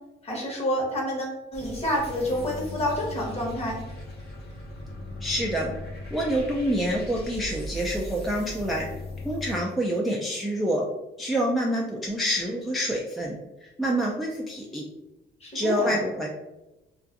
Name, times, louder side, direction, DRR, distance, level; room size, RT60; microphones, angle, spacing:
voice 1, 0.2-3.8 15.4-15.9, equal, 30° left, -3 dB, 1.0 m, -28 dB
sound 1, 1.5-9.6, left 1 dB, 55° left, 0.9 m, -38 dB
voice 2, 5.2-5.7 6.1-8.9 9.2-10.8 11.2-13.3 13.6-14.9 15.5-16.3, equal, ahead, -3 dB, 0.3 m, -27 dB
2.5 x 2.3 x 2.5 m, 1.0 s
cardioid pair, 90°, 20 cm